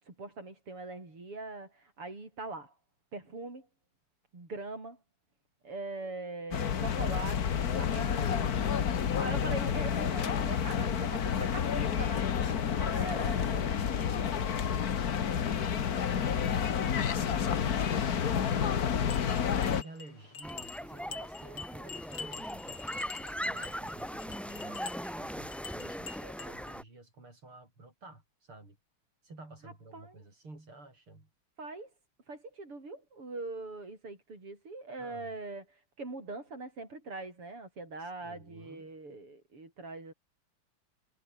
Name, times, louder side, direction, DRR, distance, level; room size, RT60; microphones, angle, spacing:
voice 1, 0.0-2.7 3.1-3.7 4.3-5.0 5.6-8.6 9.2-13.6 29.6-30.2 31.6-31.9 32.3-40.1, right 3 dB, 90° right, 8.1 m, -42 dB
sound 1, 6.5-19.8, left 8 dB, 45° left, 1.7 m, -30 dB
voice 2, 7.8-8.2 12.8-19.2 19.7-24.8 25.2-28.8 29.2-31.3 35.0-35.3 38.0-38.9, right 2 dB, 70° right, 8.4 m, -52 dB
sound 2, 18.6-26.8, left 5 dB, 75° left, 4.3 m, -47 dB
sound 3, 20.4-26.8, equal, ahead, 6.8 m, -39 dB
omnidirectional pair, 2.4 m